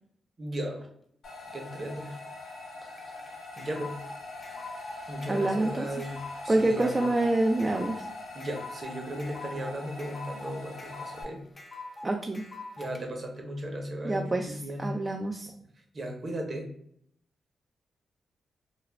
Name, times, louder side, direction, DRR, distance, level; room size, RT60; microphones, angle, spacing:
voice 1, 0.4-0.9 1.5-2.2 2.8-3.2 3.6-4.0 5.1-6.2 6.4-7.2 8.3-11.4 12.8-14.9 15.9-16.7, right 1 dB, 50° right, 2 dB, 0.7 m, -36 dB
sound 1, 1.2-11.2, left 2 dB, 70° left, 0.7 m, -43 dB
sound 2, 3.0-13.0, left 2 dB, 35° left, 0.5 m, -43 dB
voice 2, 5.3-5.9 6.5-8.1 12.0-12.5 14.0-15.5, right 2 dB, 25° right, 3 dB, 0.3 m, -27 dB
2.4 x 2.0 x 3.2 m, 0.68 s
cardioid pair, 60°, 0 cm